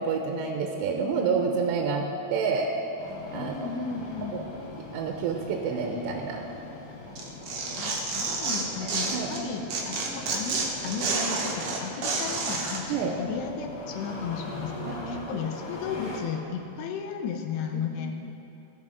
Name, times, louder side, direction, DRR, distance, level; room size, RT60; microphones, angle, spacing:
voice 1, 0.0-2.7 3.3-3.8 4.3-4.4 4.9-6.4 9.1-9.3 12.9-13.1 14.9-15.0 17.7-17.8, right 5 dB, 85° right, 2 dB, 2.8 m, -28 dB
Engine starting, 3.0-16.2, left 2 dB, 55° left, 1.5 m, -41 dB
voice 2, 3.3-4.3 7.7-18.2, left 7 dB, 85° left, 4 dB, 2.7 m, -35 dB
Tearing, 7.2-9.4 9.7-12.8, right 3 dB, 65° right, 2.2 m, -29 dB
17.0 x 6.6 x 5.1 m, 2.9 s
omnidirectional pair, 5.0 m